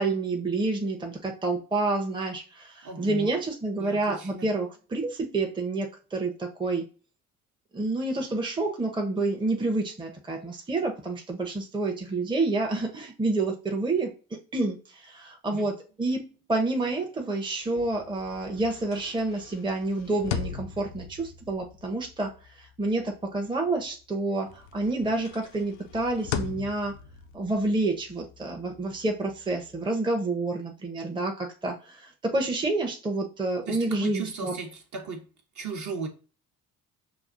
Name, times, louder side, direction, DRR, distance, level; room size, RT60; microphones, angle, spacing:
voice 1, 0.0-2.4 3.0-5.9 6.1-6.8 7.7-14.1 14.5-14.8 15.4-15.7 16.0-16.2 16.5-22.3 22.8-24.5 24.7-26.9 27.3-31.3 31.6-31.7 32.3-34.5, right 2 dB, 10° right, 0.8 m, -28 dB
voice 2, 2.8-3.4 3.8-4.5 15.5-15.7 33.7-35.2 35.5-36.1, right 4 dB, 40° right, 1.0 m, -36 dB
sound 1, 17.7-24.1 24.5-29.9, left 8 dB, 65° left, 0.6 m, -40 dB
5.8 x 2.3 x 2.6 m
figure-of-eight pair, 50°, 44 cm